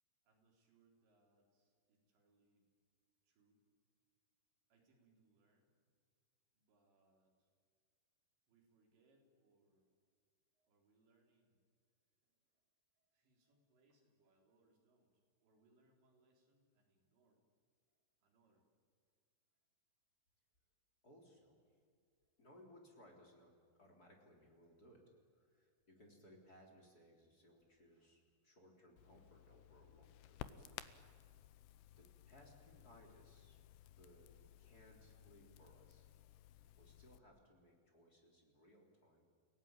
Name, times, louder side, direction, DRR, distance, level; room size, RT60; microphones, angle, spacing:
voice 1, 0.2-2.7 3.2-3.6 4.7-5.8 6.5-7.5 8.5-9.9 10.5-11.6 12.2-12.7 12.9-17.4 17.9-18.7 19.5-19.6, right 3 dB, 65° right, 0 dB, 6.0 m, -76 dB
voice 2, 21.0-21.8 22.4-25.0 25.3-30.8 32.0-36.1 36.8-39.3, equal, 20° left, 0 dB, 3.4 m, -65 dB
Crackle, 29.0-37.2, left 12 dB, 75° left, 2.6 m, -57 dB
30.0 x 17.5 x 9.0 m, 2.1 s
omnidirectional pair, 5.5 m